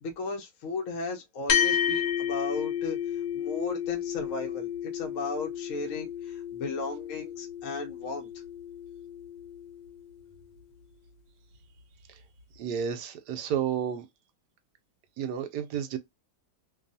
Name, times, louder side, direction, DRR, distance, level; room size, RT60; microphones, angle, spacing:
voice 1, 0.0-3.0 3.3-8.3, left 3 dB, 60° left, 0.9 m, -35 dB
sound 1, 1.5-10.2, left 9 dB, 85° left, 1.5 m, -32 dB
voice 2, 12.6-14.1 15.2-16.0, right 8 dB, 75° right, 1.1 m, -31 dB
3.0 x 2.3 x 2.6 m
omnidirectional pair, 1.9 m